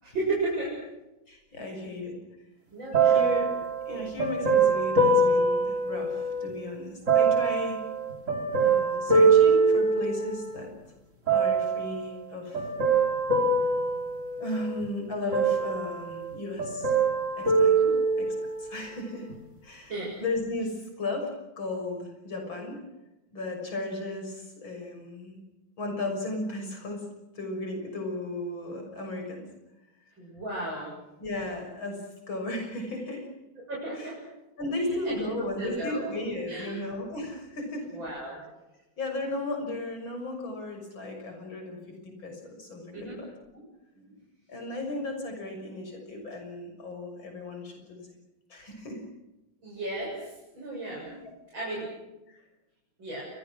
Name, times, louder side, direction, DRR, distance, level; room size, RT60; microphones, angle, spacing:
voice 1, 0.0-0.7 2.7-3.3 17.8-18.0 19.9-20.1 30.2-30.9 33.7-34.1 35.0-36.1 36.5-36.8 37.9-38.4 42.9-43.2 49.6-51.1 51.5-51.9 53.0-53.3, right 2 dB, 75° right, -4 dB, 8.0 m, -34 dB
voice 2, 1.3-2.1 3.0-3.5 3.9-7.8 8.6-10.7 11.3-12.7 14.4-16.9 17.4-17.7 18.2-18.3 18.6-19.3 19.6-20.0 20.2-21.3 21.6-22.8 23.3-25.4 25.8-27.0 27.4-29.5 31.2-32.0 32.3-33.3 34.0-34.1 34.6-38.0 39.0-41.8 42.0-43.3 43.5-43.6 43.9-44.2 44.5-48.1 48.5-49.1 51.1-51.3 52.3-52.4, left 2 dB, 80° left, 3 dB, 7.2 m, -35 dB
sound 1, 2.9-6.5 7.1-10.6 11.3-11.9 12.5-14.9 15.3-16.3 16.6-18.6 19.3-19.4, right 4 dB, 40° right, 3.3 m, -24 dB
28.5 x 23.5 x 6.4 m, 0.99 s
omnidirectional pair, 2.1 m